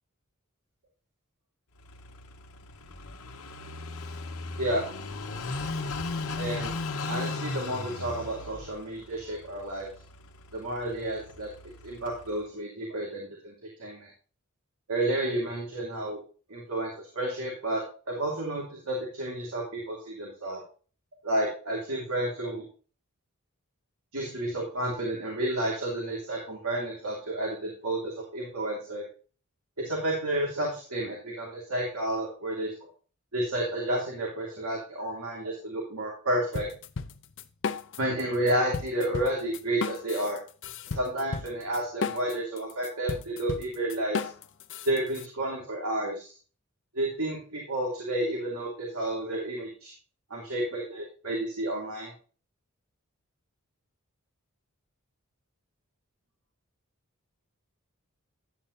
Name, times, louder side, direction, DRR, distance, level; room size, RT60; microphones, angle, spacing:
Car passing by / Idling, 1.8-12.4, left 3 dB, 75° left, 1.0 m, -37 dB
voice 1, 6.4-6.7 7.1-9.9 10.5-11.5 11.8-14.1 14.9-16.2 16.5-20.6 21.2-22.7 24.1-29.0 29.8-32.7 33.3-36.7 38.0-40.4 40.9-44.3 44.8-46.3 46.9-49.9 50.3-52.1, right 1 dB, 80° right, -3 dB, 2.8 m, -31 dB
sound 1, 36.5-38.2 38.5-45.3, left 5 dB, 60° left, 0.7 m, -34 dB
11.5 x 8.3 x 2.7 m, 0.38 s
head